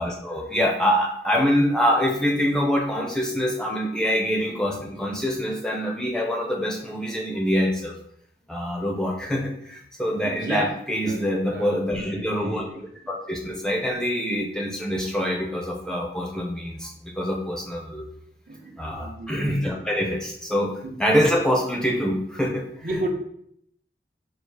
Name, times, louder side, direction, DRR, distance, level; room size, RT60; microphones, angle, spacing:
voice 1, 0.0-7.9 8.5-12.7 13.1-18.1 18.8-20.7 21.0-22.6, equal, 5° left, 0 dB, 0.5 m, -25 dB
voice 2, 10.2-12.8 18.5-19.6 20.8-20.9 22.8-23.1, right 1 dB, 50° right, 2 dB, 0.7 m, -33 dB
4.6 x 2.4 x 4.7 m, 0.69 s
head